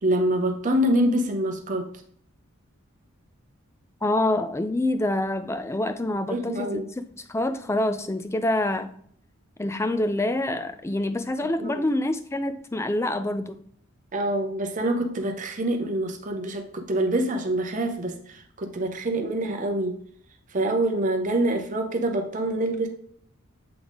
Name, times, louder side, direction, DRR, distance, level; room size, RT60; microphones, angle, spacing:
voice 1, 0.0-1.9 6.3-6.8 11.6-11.7 14.1-20.0 20.5-22.9, right 1 dB, 35° right, 0.7 m, -25 dB
voice 2, 4.0-6.8 7.2-8.9 9.6-13.6, left 1 dB, 15° left, 0.3 m, -26 dB
7.8 x 3.7 x 3.5 m
head